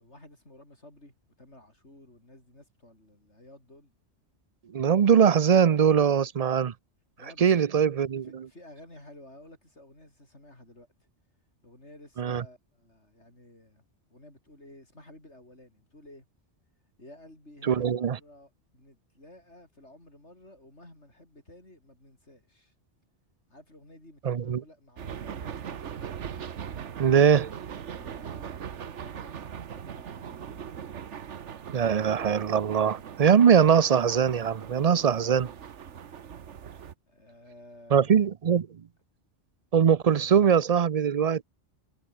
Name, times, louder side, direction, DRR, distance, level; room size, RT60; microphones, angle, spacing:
voice 1, 0.0-3.9 7.2-7.5 8.4-10.9 11.6-13.8 14.1-16.3 17.0-22.7 23.5-25.8 27.9-30.7 37.1-38.2, left 1 dB, 70° left, 8.4 m, -53 dB
voice 2, 4.7-6.7 7.4-8.5 12.2-12.4 17.6-18.2 24.2-24.6 27.0-27.5 31.7-35.5 37.9-38.8 39.7-41.4, right 7 dB, 45° right, 0.5 m, -22 dB
sound 1, 25.0-36.9, right 8 dB, 85° right, 1.4 m, -40 dB
omnidirectional pair, 1.2 m